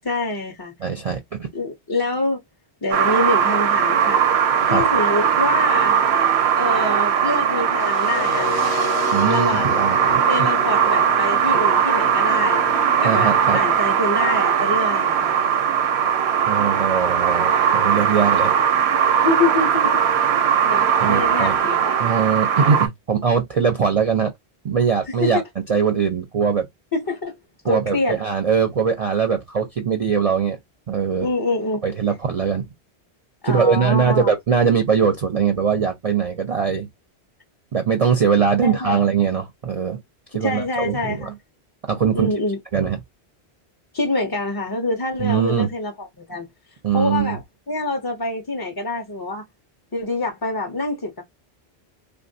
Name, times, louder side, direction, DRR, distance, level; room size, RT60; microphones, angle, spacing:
voice 1, 0.0-0.7 1.5-2.4 2.8-4.2 4.6-6.0 6.6-8.7 9.3-9.8 10.3-12.6 13.0-15.4 19.2-20.0 20.6-21.9 25.1-25.5 26.9-27.3 27.6-28.2 31.2-31.8 33.4-34.3 38.6-39.0 40.4-41.3 42.1-42.6 43.9-46.5 46.9-49.4 49.9-51.2, left 2 dB, 30° left, 0.4 m, -25 dB
voice 2, 0.8-1.5 4.7-4.8 9.1-10.5 13.0-13.6 16.5-18.5 21.0-21.5 22.0-24.3 24.6-25.4 25.7-26.7 27.7-30.6 30.9-31.3 31.8-32.7 33.4-36.9 37.7-40.0 40.3-41.3 41.9-42.3 42.7-43.0 45.2-45.7 46.8-47.4, right 6 dB, 45° right, 0.5 m, -21 dB
sound 1, 2.9-22.9, right 8 dB, 80° right, 0.8 m, -19 dB
sound 2, 7.8-13.8, left 7 dB, 65° left, 0.7 m, -32 dB
3.5 x 2.2 x 2.6 m
omnidirectional pair, 1.1 m